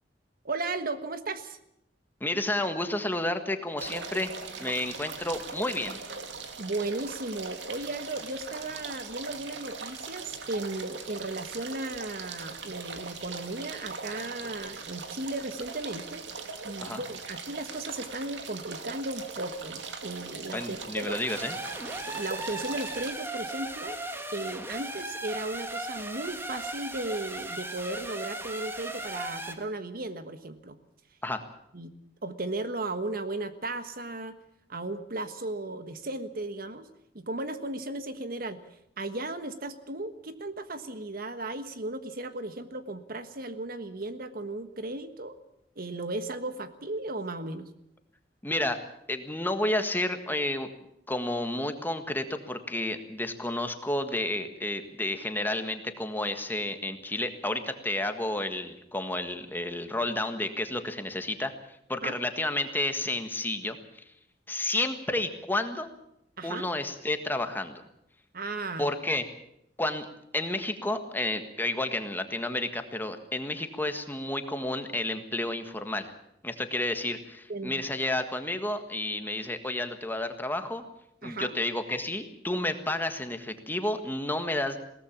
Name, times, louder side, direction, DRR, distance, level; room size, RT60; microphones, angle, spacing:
voice 1, 0.4-1.6 6.6-16.2 16.6-21.2 22.0-24.0 24.3-30.8 31.7-31.9 32.2-34.4 34.7-36.9 37.1-38.6 39.0-45.4 45.8-47.7 62.0-62.1 66.4-66.7 68.3-68.9 77.5-77.8 81.2-81.6, right 2 dB, 55° right, 10 dB, 1.4 m, -35 dB
voice 2, 2.2-6.0 16.8-17.0 20.5-21.6 31.2-31.4 48.4-48.8 49.1-50.7 51.1-61.5 61.9-64.0 64.5-65.9 66.4-67.8 68.8-69.3 69.8-70.1 70.3-76.1 76.4-80.8 81.2-84.8, left 1 dB, 10° left, 7 dB, 1.6 m, -31 dB
sound 1, 3.8-23.1, right 4 dB, 90° right, 2.4 m, -40 dB
sound 2, 21.3-29.5, right 1 dB, 15° right, 1.7 m, -37 dB
21.0 x 18.0 x 7.3 m, 0.77 s
head